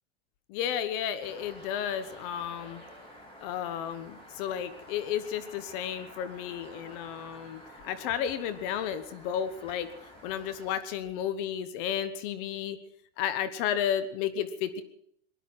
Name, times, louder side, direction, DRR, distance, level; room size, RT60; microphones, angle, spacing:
voice 1, 0.5-2.8 3.4-9.9 10.2-12.8 13.2-14.8, left 9 dB, 55° left, 14 dB, 1.2 m, -32 dB
sound 1, 1.2-10.8, equal, 15° left, 4.2 m, -50 dB
19.5 x 11.5 x 6.2 m, 0.68 s
supercardioid pair, 135°, 33 cm